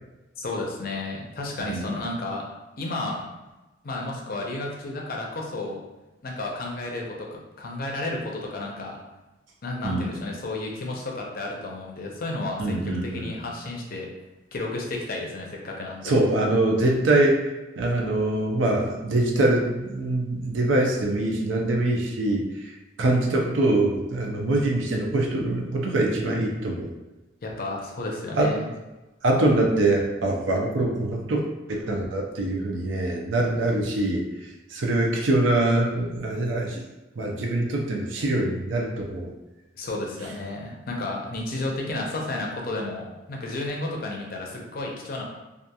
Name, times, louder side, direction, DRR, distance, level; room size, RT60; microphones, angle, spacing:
voice 1, 0.4-2.4 2.8-3.3 3.8-5.8 6.2-9.0 9.6-14.1 14.5-16.2 27.4-28.7 39.7-45.2, left 2 dB, 50° left, -1 dB, 0.5 m, -32 dB
voice 2, 1.7-2.0 9.8-10.2 12.6-13.3 16.0-17.4 17.8-22.7 23.0-26.9 28.4-28.5 29.2-31.4 31.7-34.2 34.7-36.8 37.2-39.3, right 2 dB, 85° right, 0 dB, 0.5 m, -24 dB
2.8 x 2.4 x 2.2 m, 1.1 s
head